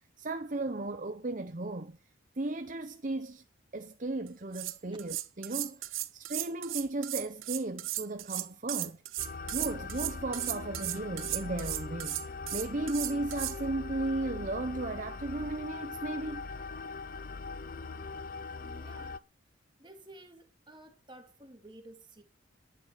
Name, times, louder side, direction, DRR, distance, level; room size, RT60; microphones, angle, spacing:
voice 1, 0.2-2.0 2.4-3.4 3.7-9.0 9.5-12.2 12.5-16.5, right 2 dB, 40° right, 0.8 m, -35 dB
sound 1, 4.3-4.4 4.5-13.6, right 16 dB, 80° right, 0.9 m, -36 dB
sound 2, 9.2-19.2, left 4 dB, 45° left, 0.5 m, -41 dB
voice 2, 17.6-18.0 18.6-19.2 19.8-22.2, right 1 dB, 25° right, 2.3 m, -53 dB
12.5 x 9.4 x 6.8 m
head